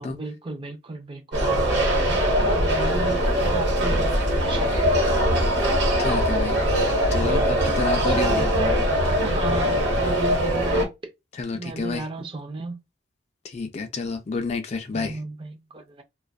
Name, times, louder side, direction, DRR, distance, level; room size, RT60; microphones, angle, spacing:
voice 1, 0.0-4.1 4.4-5.6 8.1-11.1 11.5-12.8 14.9-16.0, right 3 dB, 30° right, 0.4 m, -35 dB
sound 1, 1.3-10.8, equal, 70° right, 1.0 m, -21 dB
voice 2, 6.0-6.6 7.1-8.5 11.3-12.1 13.4-15.2, left 4 dB, 35° left, 0.4 m, -29 dB
2.5 x 2.2 x 2.3 m
head